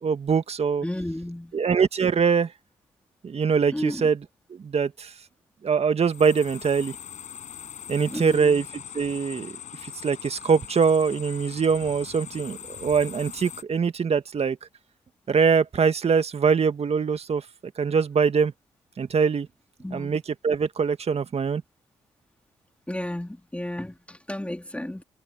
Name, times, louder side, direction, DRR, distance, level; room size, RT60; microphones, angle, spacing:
voice 1, 0.0-0.9 1.5-2.5 3.2-4.2 4.6-5.1 5.6-7.0 7.9-9.6 9.8-14.6 15.3-17.4 17.8-18.5 19.0-19.5 19.9-21.6, right 6 dB, 50° right, 1.9 m, -23 dB
voice 2, 0.8-1.5 3.7-4.1 8.1-8.6 19.8-20.2 22.9-25.0, left 1 dB, 10° left, 3.4 m, -33 dB
sound 1, 6.0-13.6, left 9 dB, 65° left, 6.3 m, -41 dB
hypercardioid pair, 40°, 13 cm